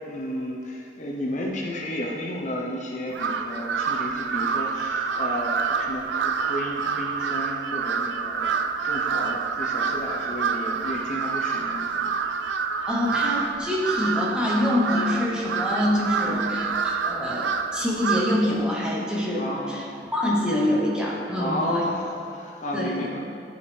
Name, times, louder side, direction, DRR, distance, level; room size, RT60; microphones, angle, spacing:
voice 1, 0.1-8.5 8.8-12.1 16.2-16.6 19.4-20.0 21.1-23.2, left 1 dB, 40° left, -1 dB, 0.7 m, -32 dB
Crow, 3.1-18.5, right 6 dB, 90° right, 0.4 m, -27 dB
voice 2, 12.9-19.8 20.1-21.8 22.7-23.1, left 1 dB, 5° right, -5 dB, 0.9 m, -25 dB
10.0 x 5.1 x 3.3 m, 2.5 s
head